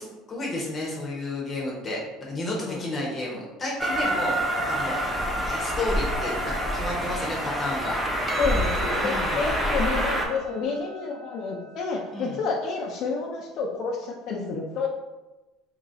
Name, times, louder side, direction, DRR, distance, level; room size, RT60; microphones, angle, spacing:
voice 1, 0.0-5.1 5.5-8.1 9.0-9.4 12.1-12.4, left 1 dB, 30° left, -3 dB, 0.8 m, -32 dB
Train, 3.8-10.3, equal, 5° right, 0.7 m, -27 dB
Percussion, 8.3-12.9, right 3 dB, 35° right, 0.3 m, -40 dB
voice 2, 8.4-14.9, left 4 dB, 60° left, -1 dB, 0.5 m, -29 dB
2.9 x 2.6 x 3.8 m, 1.1 s
supercardioid pair, 110°, 0 cm